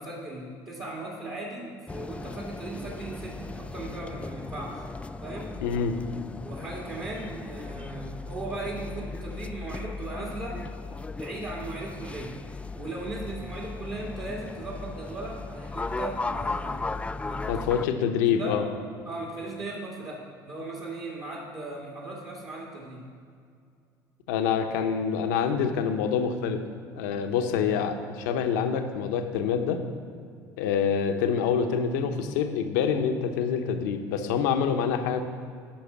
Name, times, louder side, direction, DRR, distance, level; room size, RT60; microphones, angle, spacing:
voice 1, 0.0-4.8 5.2-5.5 6.4-10.7 11.2-12.4 12.7-16.9 17.2-17.8 18.4-18.6 19.1-23.1 24.7-24.9, right 2 dB, 40° right, -5 dB, 1.9 m, -37 dB
sound 1, 1.9-17.9, left 3 dB, 15° left, 0.3 m, -37 dB
voice 2, 5.6-6.0 17.5-18.6 24.3-26.6 27.0-29.8 30.6-35.2, left 7 dB, 85° left, 6 dB, 0.8 m, -26 dB
8.7 x 5.6 x 7.2 m, 2.3 s
hypercardioid pair, 75°, 10 cm